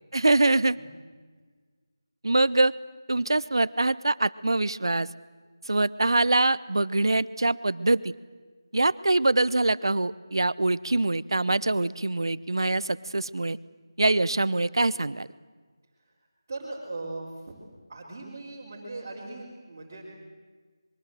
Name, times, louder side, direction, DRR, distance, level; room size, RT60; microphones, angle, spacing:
voice 1, 0.1-0.8 2.2-2.7 3.1-5.1 5.7-8.1 8.7-13.6 14.0-15.3, right 2 dB, 75° right, 18 dB, 0.8 m, -24 dB
voice 2, 16.5-17.5 17.9-20.0, right 2 dB, 25° right, -7 dB, 3.9 m, -39 dB
25.5 x 22.5 x 7.7 m, 1.4 s
figure-of-eight pair, 175°, 2 cm